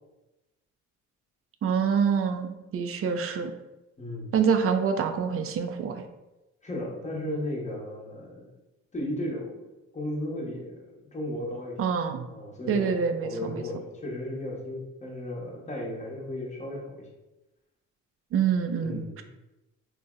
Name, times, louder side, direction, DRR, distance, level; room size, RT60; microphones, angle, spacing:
voice 1, 1.6-3.5 4.3-6.0 11.8-12.3 12.7-13.7 18.3-19.2, right 6 dB, 50° right, 7 dB, 0.4 m, -26 dB
voice 2, 4.0-4.3 6.6-8.5 8.9-9.6 9.9-11.8 12.3-17.0 18.8-19.2, left 1 dB, 25° left, -3 dB, 0.9 m, -35 dB
2.6 x 2.1 x 3.6 m, 1.0 s
cardioid pair, 90°, 30 cm